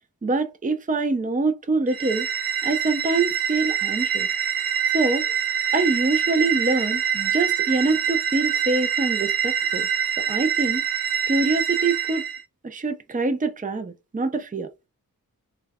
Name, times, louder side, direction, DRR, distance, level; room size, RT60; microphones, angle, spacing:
voice 1, 0.2-2.3 2.6-4.3 4.9-5.2 5.7-9.9 10.3-10.8 11.3-12.2 12.6-14.7, right 3 dB, 25° right, 0.5 m, -25 dB
sound 1, 1.9-12.4, right 8 dB, 80° right, 0.5 m, -25 dB
3.2 x 2.3 x 3.4 m
wide cardioid pair, 60°, 35 cm